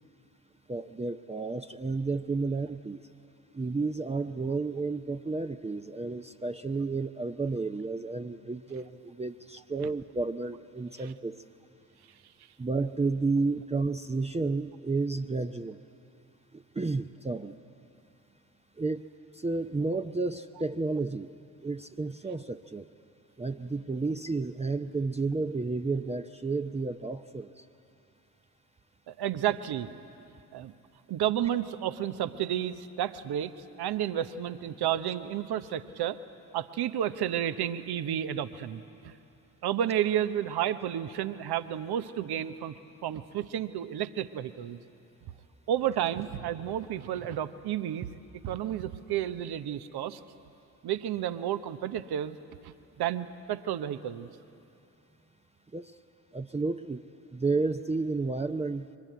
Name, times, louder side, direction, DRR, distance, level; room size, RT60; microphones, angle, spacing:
voice 1, 0.7-3.0 3.5-11.4 12.6-15.8 16.5-17.5 18.8-19.1 19.3-21.3 21.6-22.9 23.4-27.6 55.7-55.9 56.3-57.0 57.3-58.9, right 3 dB, 15° right, 6 dB, 0.7 m, -31 dB
voice 2, 29.1-29.9 30.5-30.7 31.1-33.5 33.8-36.2 36.5-39.1 39.6-42.7 43.0-44.8 45.7-48.1 48.4-50.2 50.8-52.4 52.6-54.3, right 10 dB, 60° right, 12 dB, 1.0 m, -31 dB
23.0 x 20.5 x 9.3 m, 2.7 s
hypercardioid pair, 40°, 43 cm